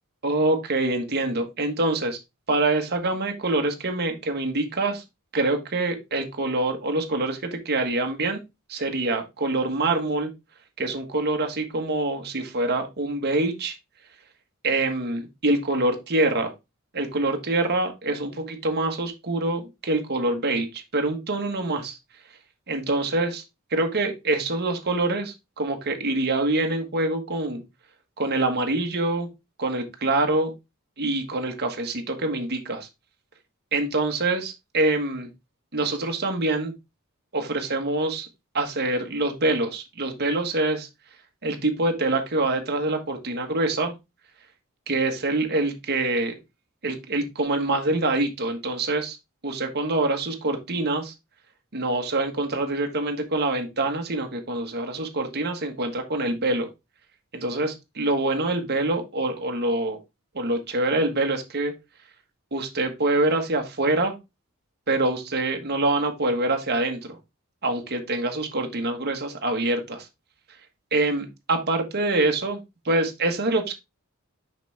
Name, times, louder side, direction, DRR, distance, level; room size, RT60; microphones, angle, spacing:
voice 1, 0.2-2.2 2.5-5.0 5.3-8.4 8.7-10.3 10.8-13.7 14.6-16.5 16.9-22.0 22.7-23.4 23.7-27.6 28.2-29.3 29.6-30.5 31.0-32.9 33.7-35.3 35.7-36.7 37.3-38.3 38.5-40.9 41.4-43.9 44.9-46.4 46.8-49.2 49.4-51.1 51.7-56.7 57.3-60.0 60.3-61.7 62.5-64.1 64.9-67.2 67.6-70.1 70.9-73.7, right 2 dB, 50° right, 4 dB, 1.4 m, -25 dB
6.0 x 5.8 x 3.4 m, 0.23 s
head